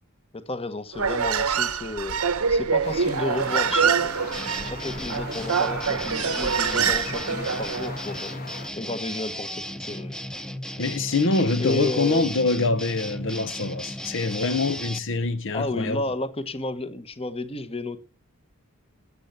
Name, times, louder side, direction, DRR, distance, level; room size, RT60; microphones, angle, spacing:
voice 1, 0.3-2.2 2.5-4.1 4.6-8.4 8.8-10.1 11.6-12.3 15.5-18.0, left 2 dB, 25° left, 1.3 m, -32 dB
Human voice, 0.9-8.0, right 6 dB, 85° right, 1.1 m, -25 dB
sound 1, 2.8-8.7, left 3 dB, 45° left, 2.4 m, -39 dB
sound 2, 4.3-15.0, equal, 5° left, 0.9 m, -35 dB
voice 2, 10.8-16.0, left 3 dB, 60° left, 0.9 m, -25 dB
12.5 x 8.0 x 8.8 m
head